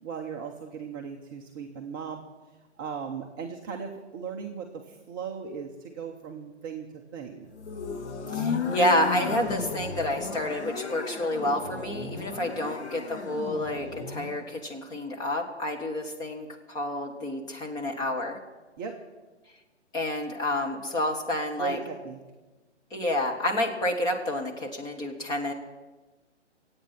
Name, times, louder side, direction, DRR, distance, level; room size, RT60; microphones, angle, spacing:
voice 1, 0.0-2.2 2.8-7.5 18.8-19.0 21.6-22.2, right 6 dB, 20° right, 1 dB, 0.7 m, -37 dB
sound 1, 7.6-14.4, left 5 dB, 65° left, 2.5 m, -34 dB
voice 2, 8.3-18.4 19.9-21.8 22.9-25.5, left 1 dB, 10° left, 1 dB, 1.4 m, -29 dB
25.5 x 8.7 x 5.7 m, 1.2 s
figure-of-eight pair, 140°, 36 cm